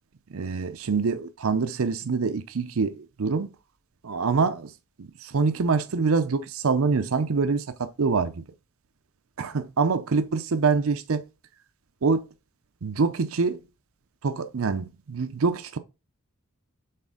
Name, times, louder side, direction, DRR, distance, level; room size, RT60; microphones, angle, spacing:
voice 1, 0.3-3.5 4.0-4.7 5.0-8.4 9.4-11.2 12.0-12.2 12.8-13.6 14.2-15.8, right 4 dB, 80° right, 0.6 m, -25 dB
6.6 x 4.2 x 3.7 m
head